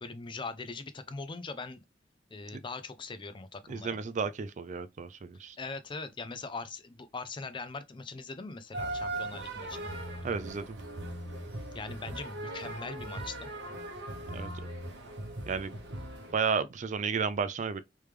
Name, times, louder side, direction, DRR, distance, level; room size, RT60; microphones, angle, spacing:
voice 1, 0.0-1.8 2.3-4.0 5.6-9.9 11.7-13.5, left 3 dB, 25° left, 0.4 m, -41 dB
voice 2, 3.7-5.6 10.2-10.8 14.3-14.5 15.5-15.7 16.3-17.8, right 5 dB, 45° right, 0.4 m, -32 dB
sound 1, 8.7-16.3, right 1 dB, 70° right, 1.0 m, -39 dB
3.3 x 3.2 x 3.2 m
head